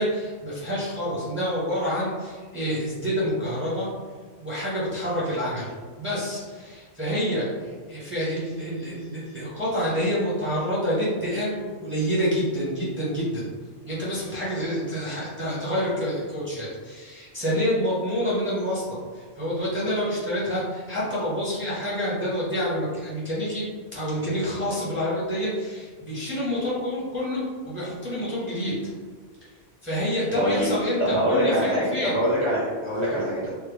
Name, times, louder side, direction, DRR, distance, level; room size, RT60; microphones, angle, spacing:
voice 1, 0.0-3.9 4.4-5.7 6.0-13.5 13.8-23.6 23.9-28.8 29.8-32.2 33.0-33.1, equal, 10° right, -8 dB, 0.8 m, -28 dB
voice 2, 30.3-30.7 31.0-33.5, equal, 30° left, -9 dB, 0.7 m, -24 dB
3.4 x 2.2 x 3.2 m, 1.5 s
omnidirectional pair, 1.3 m